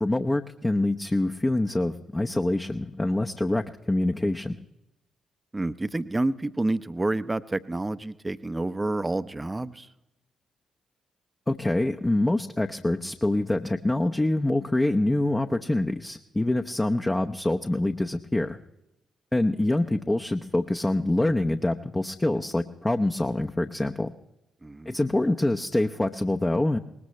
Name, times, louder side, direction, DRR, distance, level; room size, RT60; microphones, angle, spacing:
voice 1, 0.0-4.6 11.5-18.6 19.3-24.1 24.9-26.8, left 1 dB, 20° left, 4 dB, 0.8 m, -25 dB
voice 2, 5.5-9.9 24.6-25.0, right 2 dB, 20° right, 14 dB, 0.7 m, -29 dB
20.5 x 19.5 x 3.2 m, 0.92 s
hypercardioid pair, 40°, 0 cm